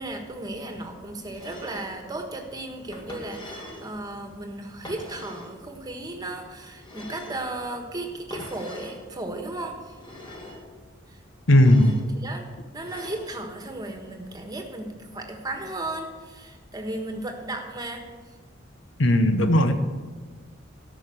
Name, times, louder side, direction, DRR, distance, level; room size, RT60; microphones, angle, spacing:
voice 1, 0.0-10.0 10.4-10.6 11.1-11.2 12.1-12.5 12.7-18.1, right 2 dB, 20° right, 4 dB, 1.4 m, -35 dB
sound 1, 1.3-1.9 2.9-3.9 4.8-5.6 6.8-7.5 8.3-9.0 9.9-10.6 11.5-12.1 12.8-13.3, left 1 dB, 25° left, 2.1 m, -42 dB
voice 2, 11.5-12.0 19.0-19.7, left 1 dB, 75° left, 9 dB, 1.0 m, -17 dB
13.5 x 5.9 x 8.3 m, 1.4 s
head